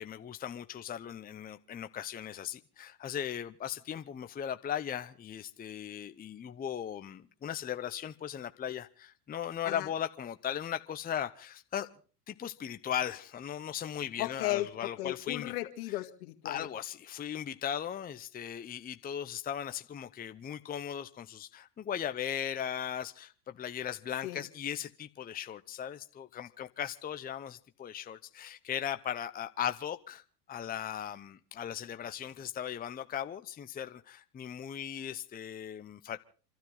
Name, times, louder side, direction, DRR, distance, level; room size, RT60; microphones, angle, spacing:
voice 1, 0.0-11.9 12.3-15.5 15.9-16.0 16.4-30.2 30.5-36.2, left 9 dB, 20° left, 0.8 m, -38 dB
voice 2, 14.2-16.7 24.2-24.4, left 17 dB, 65° left, 2.0 m, -35 dB
28.5 x 13.0 x 3.9 m
hypercardioid pair, 100°, 47 cm